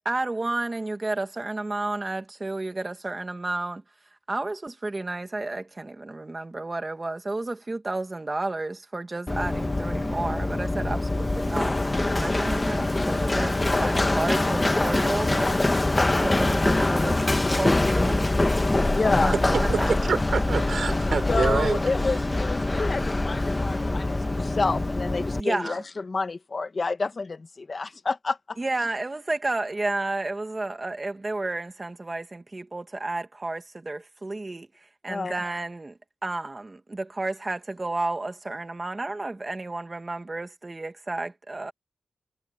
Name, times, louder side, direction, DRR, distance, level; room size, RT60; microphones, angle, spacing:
voice 1, 0.0-3.8 4.3-11.8 12.2-15.8 16.2-17.2 17.5-18.5 18.7-19.9 25.4-25.8 28.6-34.7 35.0-41.7, right 2 dB, 25° right, 2.2 m, -31 dB
Run, 9.3-25.4, left 2 dB, 20° left, 1.2 m, -24 dB
voice 2, 13.7-14.1 18.8-19.4 21.3-28.6 35.1-35.3, left 3 dB, 40° left, 1.4 m, -29 dB
voice 3, 19.7-21.8, right 5 dB, 70° right, 3.7 m, -26 dB
wide cardioid pair, 120°, 0 cm